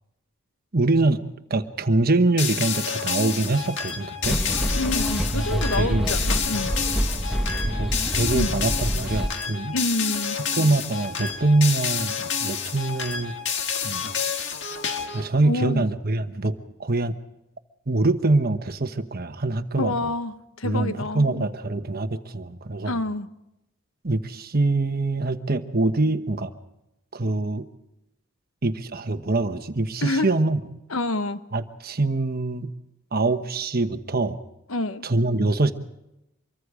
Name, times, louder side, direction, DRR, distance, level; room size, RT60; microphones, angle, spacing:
voice 1, 0.7-1.2 1.5-4.4 5.3-6.1 7.6-9.7 10.3-13.3 13.8-14.1 14.4-14.5 15.1-17.1 17.9-19.9 20.6-23.0 24.0-26.5 27.1-27.6 28.6-30.6 31.5-32.7 33.1-34.4 35.0-35.7, right 2 dB, 45° right, 9 dB, 1.1 m, -24 dB
sound 1, 2.4-15.3, left 6 dB, 55° left, 1.8 m, -29 dB
sound 2, 4.2-9.3, equal, ahead, 1.0 m, -26 dB
voice 2, 4.7-6.7 8.3-8.5 9.7-10.4 15.4-15.9 19.8-21.4 22.8-23.3 30.0-30.3 30.9-31.4 34.7-35.1, left 2 dB, 75° left, 11 dB, 1.1 m, -27 dB
25.5 x 23.0 x 5.0 m, 0.89 s
head